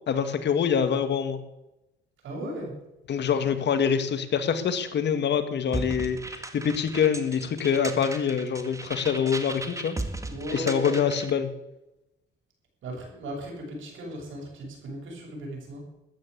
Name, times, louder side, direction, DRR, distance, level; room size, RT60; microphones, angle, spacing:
voice 1, 0.1-1.4 3.1-9.9 10.5-11.5, left 7 dB, 60° left, 9 dB, 2.0 m, -25 dB
voice 2, 2.2-2.8 10.3-11.1 12.8-15.8, right 1 dB, 75° right, 0 dB, 7.5 m, -36 dB
sound 1, 5.7-11.4, right 2 dB, 15° right, 1.9 m, -36 dB
14.0 x 9.7 x 8.3 m, 0.93 s
cardioid pair, 90°, 20 cm